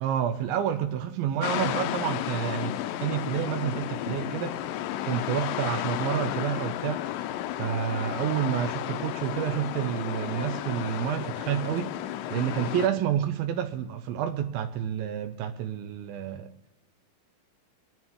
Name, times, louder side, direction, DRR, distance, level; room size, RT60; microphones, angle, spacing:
voice 1, 0.0-4.6 5.0-7.0 7.6-11.9 12.3-16.5, right 10 dB, 85° right, 2.6 m, -29 dB
sound 1, 1.4-12.9, left 13 dB, 80° left, 2.3 m, -32 dB
23.0 x 11.0 x 3.7 m
omnidirectional pair, 4.2 m